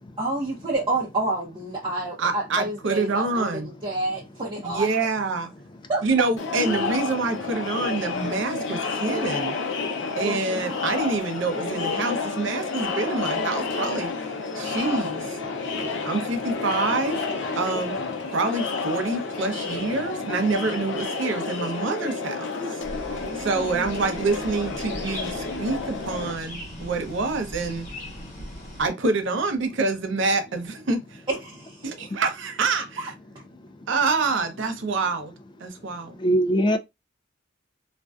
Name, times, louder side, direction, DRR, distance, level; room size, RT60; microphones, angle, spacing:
voice 1, 0.2-4.9 5.9-6.0 10.2-10.7 23.1-24.0 31.3-31.9, right 2 dB, 25° right, 0.7 m, -29 dB
voice 2, 2.2-3.7 4.6-5.5 6.0-9.6 10.2-14.1 14.5-15.4 16.1-17.3 17.6-18.0 18.3-22.8 23.4-27.9 28.8-31.2 31.8-33.1 33.9-35.3 35.6-36.2, right 3 dB, 65° right, 0.6 m, -26 dB
Crowd, 6.4-26.3, left 4 dB, 65° left, 0.6 m, -30 dB
voice 3, 15.5-16.1 23.0-23.3 26.7-26.9 28.2-28.5 31.9-32.2 33.6-33.9 35.8-35.9 36.2-36.8, equal, 25° left, 0.3 m, -27 dB
sound 1, 22.8-28.9, left 1 dB, 40° left, 1.0 m, -39 dB
2.5 x 2.1 x 2.3 m
head